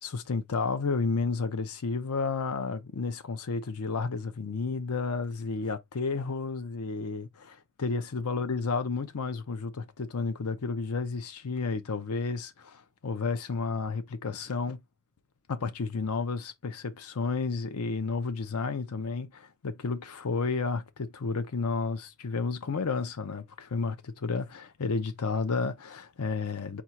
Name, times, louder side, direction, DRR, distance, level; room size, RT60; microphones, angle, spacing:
voice 1, 0.0-14.8 15.5-26.8, left 4 dB, 85° left, 0.6 m, -31 dB
4.4 x 2.4 x 4.4 m
head